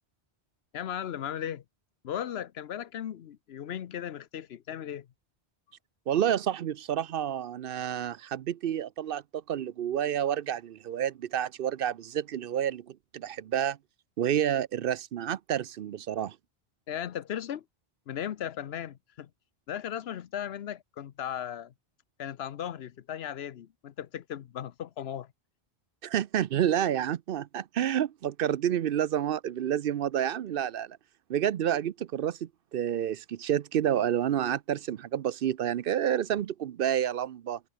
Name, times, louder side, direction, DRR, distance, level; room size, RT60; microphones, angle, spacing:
voice 1, 0.7-1.6 2.0-5.1 16.9-17.6 18.1-19.3 19.7-21.7 22.2-25.3, left 10 dB, 80° left, 1.0 m, -36 dB
voice 2, 6.1-13.8 14.2-16.4 26.0-31.0 31.3-37.6, right 10 dB, 65° right, 0.8 m, -29 dB
omnidirectional pair, 1.1 m